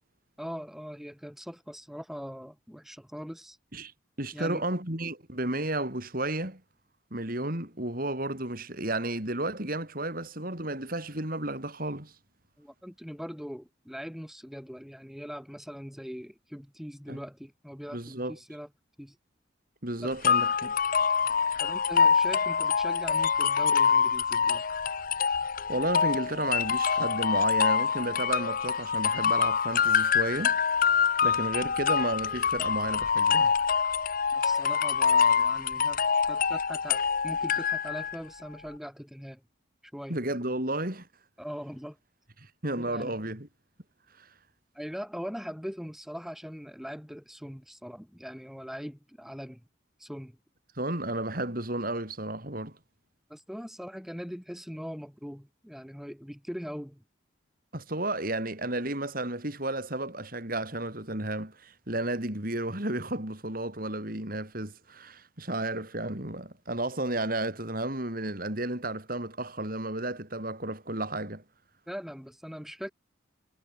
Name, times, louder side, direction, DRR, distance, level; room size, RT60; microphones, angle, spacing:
voice 1, 0.4-3.6 4.3-4.6 12.6-18.7 19.0-19.2 20.0-20.1 21.6-24.7 34.3-39.4 39.9-40.2 41.4-42.0 42.8-43.2 44.7-49.6 50.0-50.4 53.3-57.0 71.9-72.9, equal, ahead, 6.0 m, -41 dB
voice 2, 4.2-6.6 7.1-12.1 17.1-17.2 17.9-18.4 19.8-20.7 25.7-30.6 31.2-33.5 40.1-41.1 42.4-43.5 44.2-44.3 50.7-52.8 57.7-71.4, right 1 dB, 45° right, 4.6 m, -32 dB
sound 1, 20.2-38.2, left 6 dB, 45° left, 0.7 m, -25 dB
head